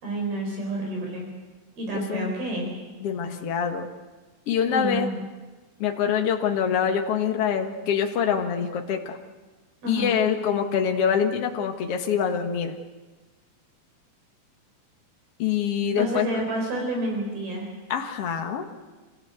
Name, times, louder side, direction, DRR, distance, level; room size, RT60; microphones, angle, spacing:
voice 1, 0.0-1.3 1.8-2.7 4.7-5.1 9.8-10.1 16.0-17.7, right 1 dB, 60° right, 0 dB, 6.1 m, -29 dB
voice 2, 1.9-2.3 3.0-3.9 4.5-5.1 5.8-9.2 9.9-12.7 15.4-16.3 17.9-18.7, left 7 dB, 55° left, 4 dB, 1.7 m, -25 dB
26.0 x 17.0 x 8.1 m, 1.3 s
omnidirectional pair, 4.8 m